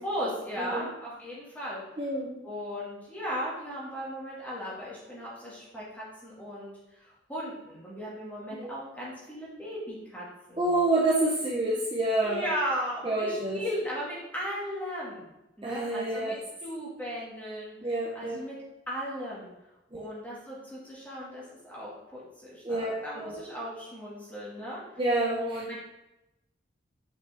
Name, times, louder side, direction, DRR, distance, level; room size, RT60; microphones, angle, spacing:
voice 1, 0.0-1.8 2.4-10.7 12.2-15.3 15.6-16.4 16.6-17.7 18.1-18.6 18.9-19.5 20.0-24.8 25.4-25.8, equal, 10° left, -7 dB, 2.1 m, -36 dB
voice 2, 2.0-2.4 8.6-8.7 10.6-12.4 13.0-13.6 15.6-16.3 17.8-18.4 19.9-20.1 22.6-23.4 25.0-25.6, right 2 dB, 25° right, -4 dB, 0.9 m, -28 dB
6.2 x 5.6 x 3.6 m, 0.93 s
head